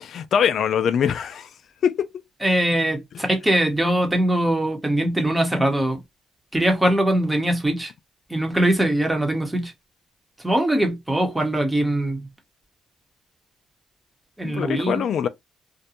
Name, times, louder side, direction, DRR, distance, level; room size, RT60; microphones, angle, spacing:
voice 1, 0.0-1.5 1.8-2.1 14.4-15.3, left 8 dB, 65° left, 0.3 m, -23 dB
voice 2, 2.4-6.0 6.5-7.9 8.3-9.7 10.4-12.3 14.4-15.1, right 1 dB, 10° right, 0.9 m, -22 dB
2.5 x 2.1 x 2.8 m
cardioid pair, 90°, 0 cm